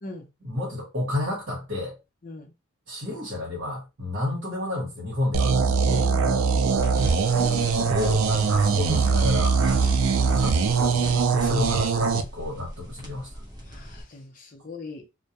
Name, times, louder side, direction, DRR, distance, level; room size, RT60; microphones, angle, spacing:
voice 1, 0.4-2.0 2.9-5.5 7.3-9.6 10.2-13.3, left 2 dB, 60° right, 1.0 m, -31 dB
voice 2, 2.2-2.5 5.8-7.4 13.6-15.1, left 3 dB, 40° left, 0.5 m, -41 dB
sound 1, 5.3-12.2, right 5 dB, 85° right, 0.4 m, -22 dB
sound 2, 6.8-14.0, equal, 20° right, 0.7 m, -37 dB
2.2 x 2.1 x 2.8 m
head